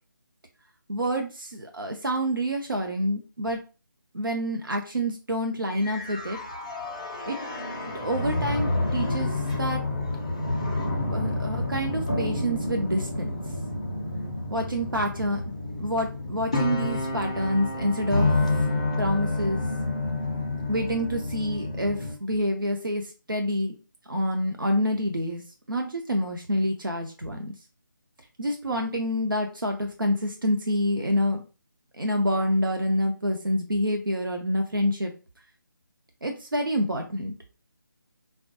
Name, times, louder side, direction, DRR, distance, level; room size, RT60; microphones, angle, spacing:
voice 1, 0.9-3.6 4.1-6.4 7.3-7.4 8.0-9.3 9.6-9.8 11.1-13.4 14.5-15.4 15.8-18.3 19.0-19.6 20.7-23.7 24.1-25.4 25.7-27.5 28.4-31.4 32.0-35.1 36.2-37.3, equal, 80° right, 4 dB, 0.6 m, -27 dB
sound 1, 5.7-22.1, left 2 dB, 20° left, 0.3 m, -29 dB
4.3 x 2.2 x 2.7 m, 0.33 s
figure-of-eight pair, 155°, 11 cm